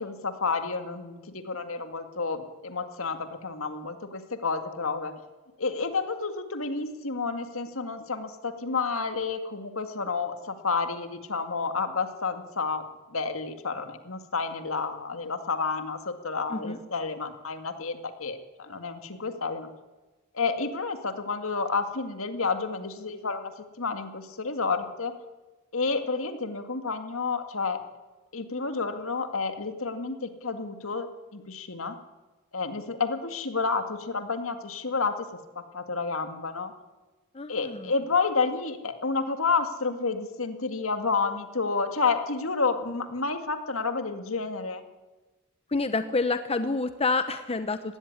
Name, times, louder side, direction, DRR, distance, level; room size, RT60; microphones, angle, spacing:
voice 1, 0.0-5.1 5.6-12.8 13.1-19.7 20.3-23.5 23.8-25.1 25.7-27.8 28.3-31.1 31.3-32.0 32.5-35.3 35.7-36.7 37.5-44.8, left 4 dB, 70° left, 7 dB, 2.0 m, -30 dB
voice 2, 37.3-37.9 45.7-48.0, left 3 dB, 30° left, 10 dB, 0.9 m, -28 dB
19.5 x 16.5 x 9.8 m, 1.2 s
head